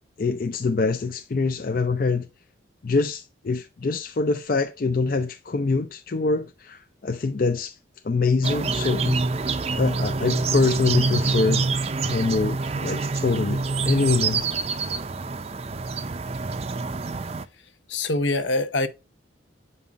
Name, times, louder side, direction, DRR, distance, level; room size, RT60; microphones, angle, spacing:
voice 1, 0.2-2.3 2.8-7.8 8.0-11.7 12.0-14.4, left 4 dB, 45° left, 0.4 m, -25 dB
sound 1, 8.4-17.4, right 3 dB, 30° right, 0.4 m, -26 dB
voice 2, 17.9-18.9, left 2 dB, 70° left, 0.8 m, -24 dB
8.3 x 5.4 x 2.4 m
head